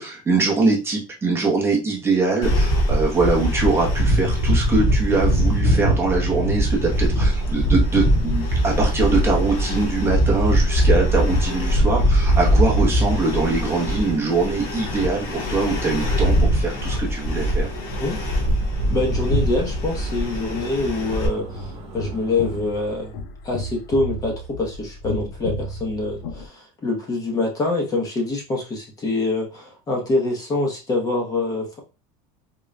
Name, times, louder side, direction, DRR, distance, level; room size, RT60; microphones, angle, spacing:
voice 1, 0.0-17.7, right 3 dB, 15° right, -2 dB, 0.7 m, -23 dB
sound 1, 2.4-21.3, equal, 55° left, 1.3 m, -21 dB
Engine, 6.9-22.6, right 2 dB, 35° right, 1.0 m, -42 dB
voice 2, 18.9-23.2 23.4-31.8, left 2 dB, 20° left, 0 dB, 0.7 m, -25 dB
sound 2, 21.4-26.5, left 1 dB, 75° left, 0.6 m, -33 dB
3.8 x 2.2 x 3.2 m, 0.30 s
cardioid pair, 170°, 18 cm